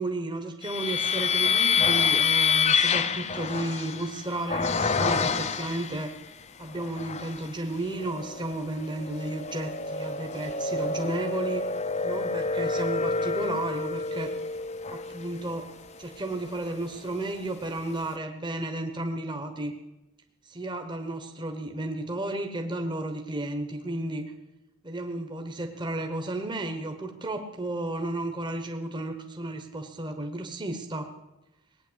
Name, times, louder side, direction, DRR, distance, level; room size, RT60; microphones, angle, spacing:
voice 1, 0.0-6.1 6.6-11.6 12.0-14.3 14.9-15.7 16.0-19.7 20.5-24.2 24.8-31.1, right 2 dB, 20° right, 5 dB, 1.1 m, -33 dB
sound 1, 0.6-6.1 6.7-7.5 8.0-17.2, left 5 dB, 30° left, 0.6 m, -28 dB
19.0 x 9.1 x 8.1 m, 0.97 s
head